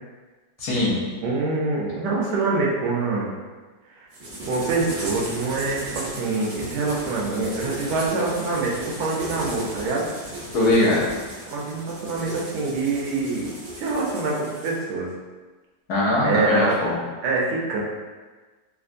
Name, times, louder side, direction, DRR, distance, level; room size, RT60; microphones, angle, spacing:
voice 1, 0.6-1.0 10.5-11.1 15.9-17.0, left 1 dB, 70° left, -5 dB, 1.3 m, -21 dB
voice 2, 1.2-3.3 3.9-4.1 4.5-10.1 11.5-15.1 16.2-16.7 17.2-17.8, right 3 dB, 90° right, -3 dB, 1.2 m, -25 dB
sound 1, 4.1-14.8, right 1 dB, 60° right, 1.4 m, -36 dB
3.3 x 2.4 x 2.5 m, 1.3 s
omnidirectional pair, 1.8 m